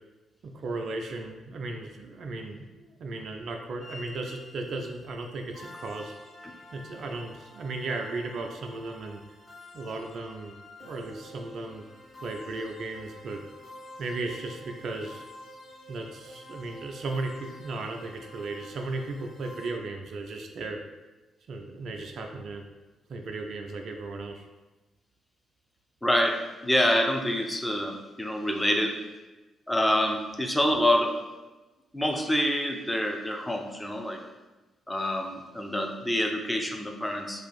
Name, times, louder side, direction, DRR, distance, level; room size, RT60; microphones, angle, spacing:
voice 1, 0.4-6.1 6.7-9.2 9.7-11.8 12.2-13.4 14.0-15.2 15.9-20.8 21.5-22.7 23.1-24.4, right 3 dB, 55° right, 3 dB, 0.3 m, -36 dB
sound 1, 3.8-19.7, left 1 dB, 30° left, 1.3 m, -48 dB
voice 2, 26.0-29.0 29.7-31.2 31.9-34.2 34.9-37.5, left 1 dB, 10° left, 3 dB, 0.5 m, -26 dB
2.6 x 2.4 x 4.1 m, 1.2 s
figure-of-eight pair, 40°, 0 cm